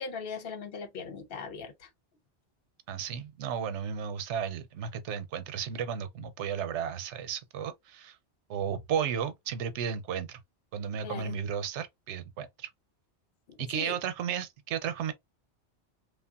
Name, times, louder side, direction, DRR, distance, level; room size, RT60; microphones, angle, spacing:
voice 1, 0.0-1.9 11.0-11.3 13.5-14.0, left 5 dB, 60° left, 0.8 m, -39 dB
voice 2, 2.9-8.2 8.5-10.4 10.7-12.7 13.6-15.1, right 8 dB, 90° right, 0.9 m, -34 dB
3.2 x 2.3 x 2.3 m
omnidirectional pair, 1.1 m